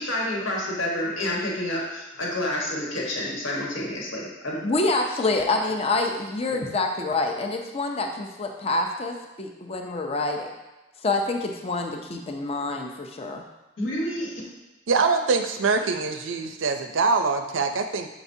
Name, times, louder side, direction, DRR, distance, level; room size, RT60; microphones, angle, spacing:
voice 1, 0.0-4.6 5.3-5.4 6.5-6.6 13.8-14.3, left 1 dB, 80° left, -4 dB, 1.4 m, -29 dB
voice 2, 4.6-10.5 11.0-13.4, left 2 dB, 30° left, 2 dB, 0.5 m, -27 dB
voice 3, 14.9-18.1, right 4 dB, 80° right, 6 dB, 0.5 m, -24 dB
7.0 x 5.0 x 2.7 m, 1.1 s
head